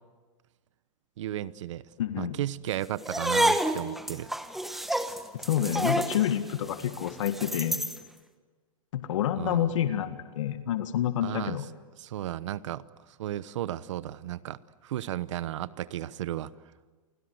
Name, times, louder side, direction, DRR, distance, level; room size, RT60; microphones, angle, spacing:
voice 1, 1.2-1.8 2.2-4.3 9.4-9.7 11.2-11.6 12.0-12.8 13.2-16.5, right 12 dB, 60° right, 16 dB, 1.0 m, -34 dB
voice 2, 2.0-2.4 5.3-7.8 8.9-11.6, left 10 dB, 65° left, 9 dB, 1.8 m, -28 dB
sound 1, 3.0-8.0, right 1 dB, ahead, 1.0 m, -29 dB
30.0 x 25.0 x 8.0 m, 1.3 s
supercardioid pair, 165°, 17 cm